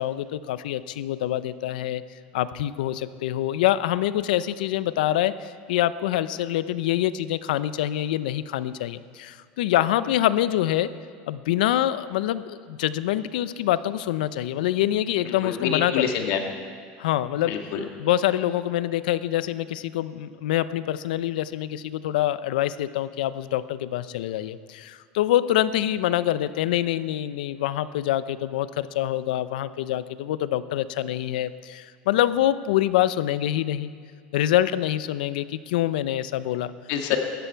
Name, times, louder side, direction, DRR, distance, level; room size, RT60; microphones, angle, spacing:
voice 1, 0.0-2.0 2.3-10.9 11.3-16.1 17.0-17.5 18.0-33.9 34.3-36.7, left 13 dB, 90° left, 15 dB, 0.6 m, -25 dB
voice 2, 15.3-16.4 17.5-17.8 36.9-37.2, left 8 dB, 60° left, 3 dB, 1.9 m, -27 dB
17.5 x 14.0 x 4.6 m, 2.1 s
supercardioid pair, 145°, 4 cm